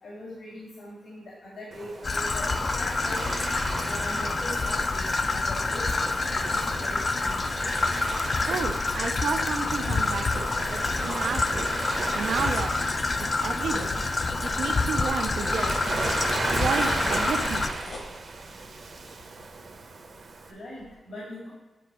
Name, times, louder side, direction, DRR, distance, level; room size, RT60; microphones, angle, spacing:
voice 1, 0.0-3.2 3.8-7.4 20.5-21.5, left 1 dB, 75° left, -6 dB, 2.0 m, -41 dB
Waves surf, 1.7-20.5, right 3 dB, 50° right, 0.8 m, -35 dB
Traffic noise roadway noise / Trickle dribble, 2.0-17.7, left 3 dB, 35° left, 0.4 m, -27 dB
sound 1, 6.4-12.5 12.9-20.4 20.8-20.9, left 2 dB, 55° left, 1.2 m, -45 dB
voice 2, 8.5-11.7 12.1-12.9 13.2-13.9 14.4-15.8 16.5-17.7, right 5 dB, 80° right, 5 dB, 0.4 m, -32 dB
8.4 x 3.9 x 4.9 m, 1.2 s
wide cardioid pair, 150°, 0 cm